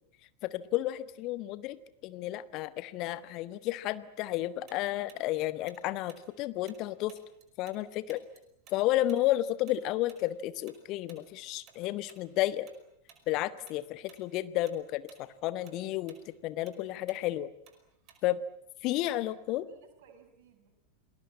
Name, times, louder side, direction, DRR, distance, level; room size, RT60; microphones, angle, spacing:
voice 1, 0.4-7.2 7.6-8.2 8.7-12.7 13.3-17.5 18.2-18.4 18.8-19.7, left 15 dB, 40° left, 15 dB, 1.3 m, -32 dB
Tick-tock, 4.7-7.8 8.1-12.8 13.1-13.3 13.7-14.2 14.5-18.5, right 8 dB, 35° right, 5.1 m, -58 dB
voice 2, 19.1-20.7, right 6 dB, 50° right, 5 dB, 6.4 m, -60 dB
28.5 x 20.0 x 8.7 m, 0.80 s
figure-of-eight pair, 90°, 0 cm